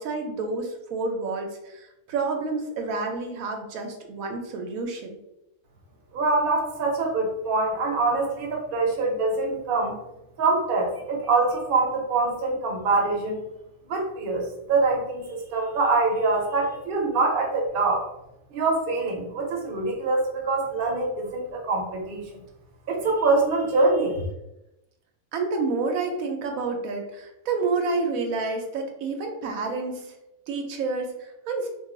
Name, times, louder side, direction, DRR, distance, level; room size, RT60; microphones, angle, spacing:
voice 1, 0.0-5.2 25.3-30.1 30.5-31.7, right 3 dB, 85° right, 3 dB, 1.0 m, -29 dB
voice 2, 6.1-9.9 10.4-13.4 13.9-18.0 18.5-22.4 22.9-24.2, right 3 dB, 50° right, -1 dB, 0.8 m, -24 dB
2.5 x 2.3 x 3.7 m, 0.89 s
omnidirectional pair, 1.4 m